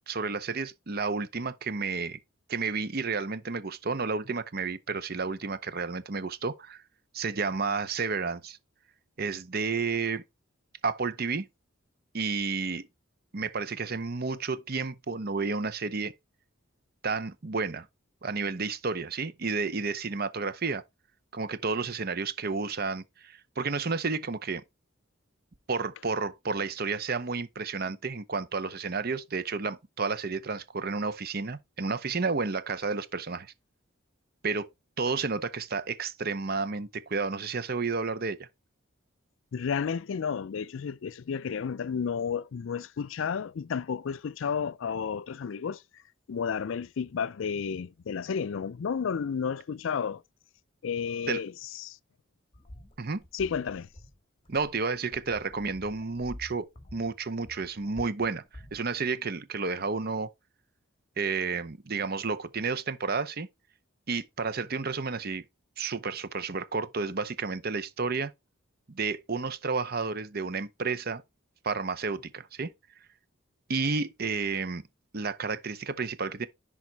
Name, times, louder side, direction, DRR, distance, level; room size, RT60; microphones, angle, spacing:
voice 1, 0.1-2.2 2.5-6.8 7.1-8.6 9.2-10.2 10.8-11.5 12.1-12.8 13.3-16.1 17.0-17.9 18.2-20.8 21.3-24.6 25.7-33.5 34.4-34.7 35.0-38.5 51.3-51.4 53.0-53.2 54.5-60.3 61.2-63.5 64.1-65.4 65.8-68.3 68.9-71.2 71.6-72.7 73.7-74.8 75.1-76.5, right 4 dB, 50° right, 0.8 m, -31 dB
voice 2, 39.5-45.8 46.3-50.2 50.8-52.0 53.3-53.9, left 6 dB, 70° left, 0.4 m, -32 dB
sound 1, 52.5-59.1, left 1 dB, 25° left, 2.0 m, -49 dB
10.5 x 4.1 x 4.0 m
head